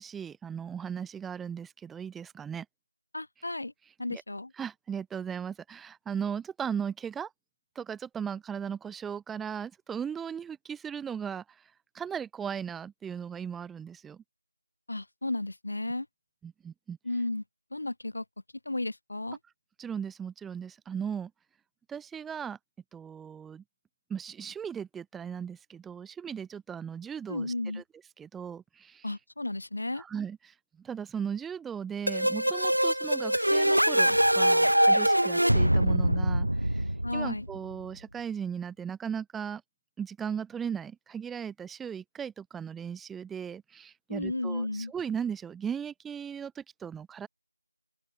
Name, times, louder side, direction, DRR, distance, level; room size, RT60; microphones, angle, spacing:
voice 1, 0.0-2.7 3.4-3.5 3.8-4.2 4.5-7.3 7.7-14.2 16.4-17.0 19.8-21.3 21.9-22.6 22.9-23.6 24.1-27.8 28.2-29.1 29.9-39.6 40.0-47.3, right 7 dB, ahead, 0.8 m, -37 dB
voice 2, 3.1-3.7 4.0-4.5 14.9-16.1 17.0-17.4 17.7-18.2 18.7-19.4 27.3-27.8 29.0-30.0 37.0-37.5 44.1-44.9, left 2 dB, 30° left, 4.0 m, -33 dB
sound 1, 32.1-37.7, right 1 dB, 75° right, 1.2 m, -24 dB
open air
figure-of-eight pair, 175°, 0 cm